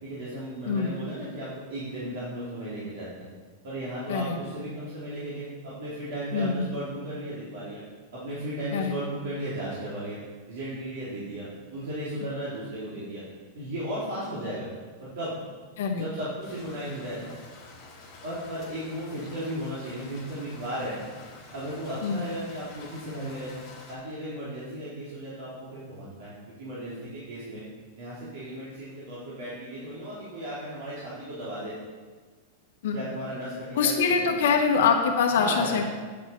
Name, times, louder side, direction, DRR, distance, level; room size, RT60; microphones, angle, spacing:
voice 1, 0.0-3.3 3.6-7.8 8.1-10.2 10.5-13.2 13.5-14.7 15.0-15.3 15.9-17.3 18.2-21.0 21.5-23.6 23.9-27.6 28.0-31.7 32.9-34.5 35.3-35.8, right 1 dB, 65° right, -9 dB, 3.1 m, -35 dB
voice 2, 6.3-6.7 8.7-8.9 15.8-16.0 22.0-22.3 32.8-33.0 33.8-35.8, left 5 dB, 70° left, 2 dB, 1.1 m, -24 dB
sound 1, 16.4-23.9, left 3 dB, 20° left, 2.0 m, -48 dB
8.5 x 7.9 x 4.6 m, 1.4 s
supercardioid pair, 165°, 0 cm